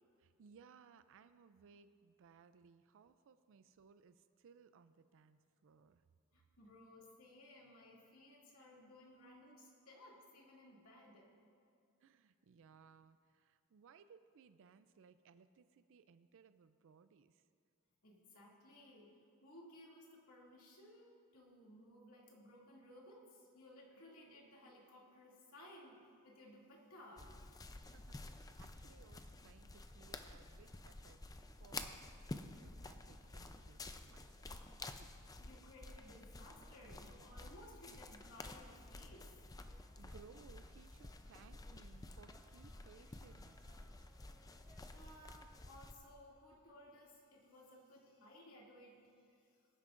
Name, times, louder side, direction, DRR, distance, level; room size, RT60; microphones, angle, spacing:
voice 1, 0.2-6.0 7.0-7.2 12.0-17.4 27.8-31.2 31.6-34.6 35.0-35.3 38.6-38.8 39.6-44.1 45.4-45.5, right 6 dB, 60° right, 12 dB, 0.4 m, -64 dB
voice 2, 6.3-11.3 18.0-19.1 19.4-27.4 35.4-39.3 44.9-49.0 49.3-49.5, left 1 dB, 70° left, -3 dB, 2.5 m, -59 dB
sound 1, 27.2-45.9, left 2 dB, 15° left, 0.5 m, -52 dB
sound 2, 36.3-46.0, right 1 dB, 5° right, 0.9 m, -74 dB
22.5 x 9.8 x 2.5 m, 2.4 s
head